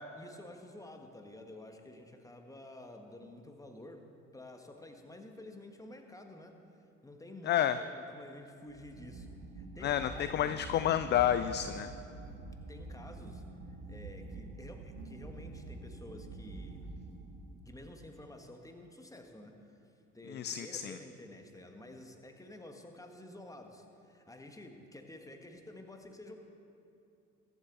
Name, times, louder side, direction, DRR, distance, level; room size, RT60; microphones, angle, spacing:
voice 1, 0.1-6.6 7.0-9.3 9.5-10.6 11.5-12.0 12.7-13.4 13.9-16.9 17.6-19.8 20.1-26.4, left 1 dB, 10° left, 4 dB, 1.6 m, -50 dB
voice 2, 7.5-7.8 9.8-11.9 20.3-21.0, left 11 dB, 30° left, 11 dB, 0.4 m, -30 dB
sound 1, 8.6-17.8, right 2 dB, 60° right, 1.9 m, -46 dB
22.0 x 8.1 x 4.1 m, 2.7 s
figure-of-eight pair, 55°, 37 cm